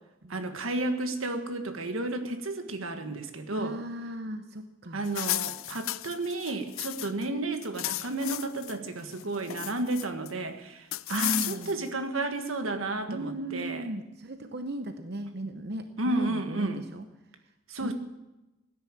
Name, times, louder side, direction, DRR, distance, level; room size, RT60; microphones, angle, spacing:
voice 1, 0.3-3.8 4.9-13.9 16.0-16.8 17.7-17.9, right 2 dB, 85° right, 7 dB, 1.6 m, -32 dB
voice 2, 3.5-5.0 11.1-11.8 13.1-17.1 17.7-17.9, right 1 dB, 50° right, 8 dB, 0.8 m, -36 dB
sound 1, 5.0-7.3 7.5-8.7 9.1-10.3 10.9-11.9, left 17 dB, 80° left, 0.4 m, -34 dB
17.0 x 10.5 x 7.5 m, 1.0 s
head